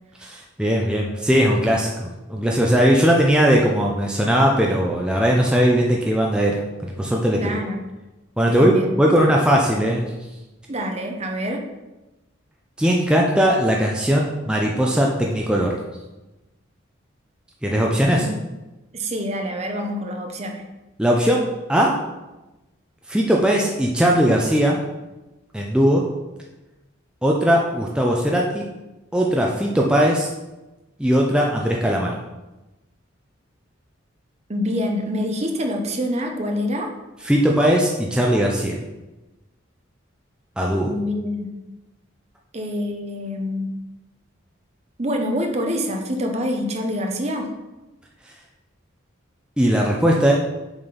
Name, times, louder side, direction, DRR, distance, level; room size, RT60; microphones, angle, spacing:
voice 1, 0.2-7.6 8.4-10.1 12.8-15.8 17.6-18.3 21.0-22.0 23.1-24.8 25.5-26.1 27.2-28.7 29.1-30.3 31.0-32.2 37.2-38.8 40.6-40.9 49.6-50.3, equal, 5° right, -2 dB, 0.6 m, -19 dB
voice 2, 7.3-7.8 8.5-8.9 10.7-11.6 18.1-18.3 18.9-20.6 34.5-36.9 40.9-41.5 42.5-43.8 45.0-47.5, equal, 35° right, 3 dB, 0.8 m, -26 dB
7.1 x 4.3 x 5.1 m, 1.1 s
head